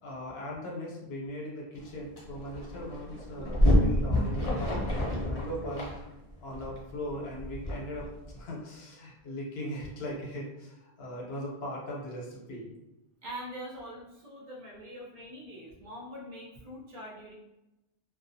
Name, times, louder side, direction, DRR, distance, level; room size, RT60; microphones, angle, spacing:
voice 1, 0.0-5.9 6.4-8.1 8.3-12.7, equal, 75° left, -3 dB, 0.9 m, -39 dB
sound 1, 1.7-1.8 2.2-8.4, equal, 40° left, 0.7 m, -28 dB
voice 2, 13.2-17.3, equal, 50° right, -4 dB, 0.7 m, -43 dB
2.4 x 2.2 x 2.6 m, 0.97 s
omnidirectional pair, 1.1 m